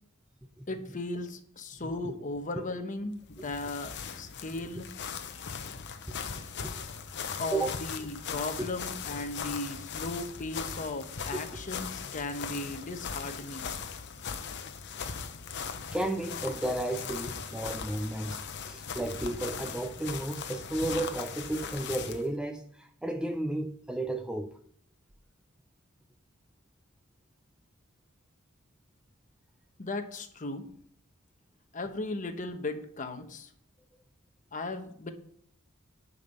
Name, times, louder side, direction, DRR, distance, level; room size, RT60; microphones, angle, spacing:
voice 1, 0.7-4.9 7.4-13.7 29.8-30.6 31.7-33.5 34.5-35.1, left 2 dB, 40° left, 1.0 m, -36 dB
voice 2, 1.8-2.2 2.6-2.7 6.1-6.2 6.6-6.8 7.5-7.8 8.6-8.7 11.3-11.4 15.9-24.6, right 2 dB, 5° right, 0.4 m, -33 dB
sound 1, 3.2-22.3, left 6 dB, 55° left, 0.8 m, -39 dB
10.0 x 5.4 x 5.5 m
head